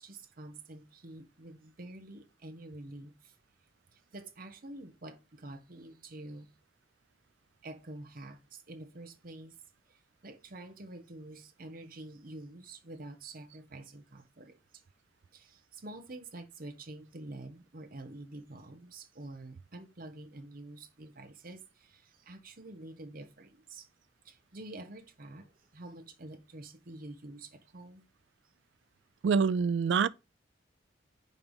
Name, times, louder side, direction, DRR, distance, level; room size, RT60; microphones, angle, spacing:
voice 1, 0.0-3.3 3.9-6.5 7.6-9.6 10.2-14.6 15.3-23.9 24.2-28.1, right 2 dB, 50° right, 0.9 m, -47 dB
voice 2, 29.2-30.1, right 6 dB, 70° right, 0.3 m, -25 dB
5.3 x 4.7 x 5.3 m
head